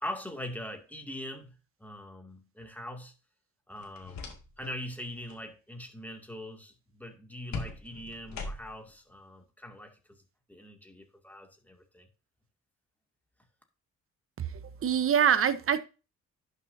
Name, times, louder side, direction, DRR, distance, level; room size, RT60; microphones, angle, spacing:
voice 1, 0.0-3.1 3.7-10.2 10.5-12.1, left 1 dB, 5° left, 2.3 m, -42 dB
sound 1, 3.8-4.8 5.1-5.4 7.5-8.9, left 3 dB, 65° left, 2.3 m, -40 dB
voice 2, 14.4-15.8, right 8 dB, 45° right, 1.0 m, -25 dB
11.0 x 6.8 x 2.7 m
cardioid pair, 90°, 30 cm